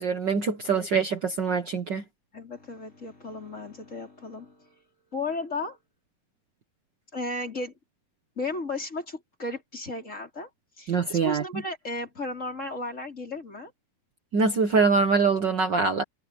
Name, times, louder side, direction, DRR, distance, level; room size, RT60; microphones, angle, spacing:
voice 1, 0.0-2.0 10.9-11.4 14.3-16.0, right 4 dB, 70° right, 1.0 m, -24 dB
voice 2, 2.3-4.7 5.1-5.8 7.1-7.7 8.4-10.5 10.8-13.7, left 2 dB, 20° left, 4.3 m, -34 dB
omnidirectional pair, 4.3 m